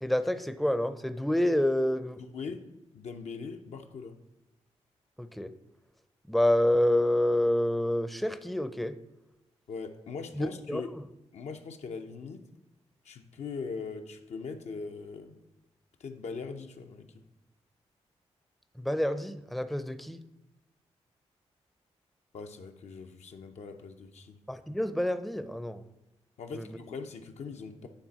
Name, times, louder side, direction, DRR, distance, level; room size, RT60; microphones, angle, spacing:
voice 1, 0.0-2.2 5.2-5.5 6.3-8.9 10.4-10.8 18.8-20.2 24.5-25.8 26.6-26.7, left 1 dB, ahead, 11 dB, 0.5 m, -28 dB
voice 2, 2.2-4.2 9.7-10.9 11.3-12.4 13.0-15.4 16.0-17.1 22.3-24.4 26.4-27.9, left 5 dB, 70° left, 5 dB, 0.6 m, -41 dB
9.0 x 3.4 x 4.0 m, 1.0 s
cardioid pair, 55°, 12 cm